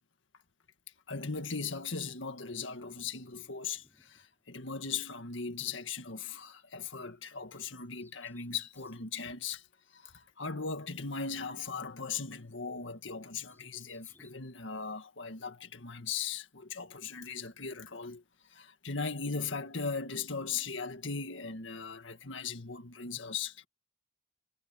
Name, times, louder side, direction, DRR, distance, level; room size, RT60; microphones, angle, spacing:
voice 1, 1.1-9.6 9.9-18.2 18.5-23.7, left 5 dB, 80° left, 1.9 m, -38 dB
Bird vocalization bird call bird song, 1.5-6.1 6.4-9.1 9.6-9.7 10.6-12.0 12.3-14.3, left 2 dB, 10° left, 6.3 m, -68 dB
head